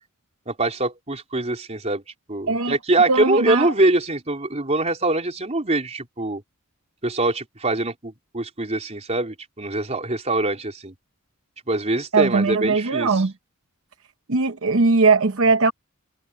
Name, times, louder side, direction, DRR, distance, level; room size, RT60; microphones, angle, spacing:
voice 1, 0.5-2.0 2.3-6.4 7.0-10.9 11.7-13.2, right 2 dB, 30° right, 3.9 m, -23 dB
voice 2, 3.1-3.7 12.1-13.3 14.3-15.7, right 4 dB, 65° right, 0.9 m, -19 dB
head